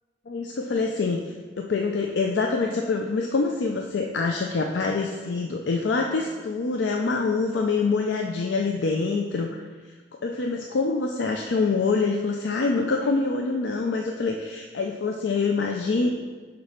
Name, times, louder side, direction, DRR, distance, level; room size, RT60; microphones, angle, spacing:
voice 1, 0.3-1.2 1.6-9.6 10.2-16.1, left 4 dB, 75° left, 2 dB, 0.4 m, -25 dB
6.0 x 4.0 x 5.0 m, 1.5 s
head